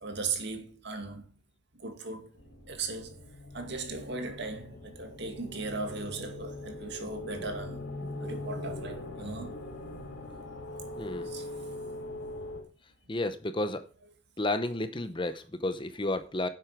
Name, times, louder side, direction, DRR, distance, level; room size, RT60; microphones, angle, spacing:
voice 1, 0.0-1.2 1.7-2.3 2.7-3.2 3.5-7.8 8.2-9.6 11.2-11.5, right 3 dB, 55° right, 2.3 m, -37 dB
sound 1, 2.3-12.6, left 1 dB, 90° left, 3.4 m, -41 dB
voice 2, 10.9-11.3 13.1-13.9 14.4-16.5, left 2 dB, 25° left, 0.7 m, -32 dB
11.0 x 7.7 x 5.0 m
head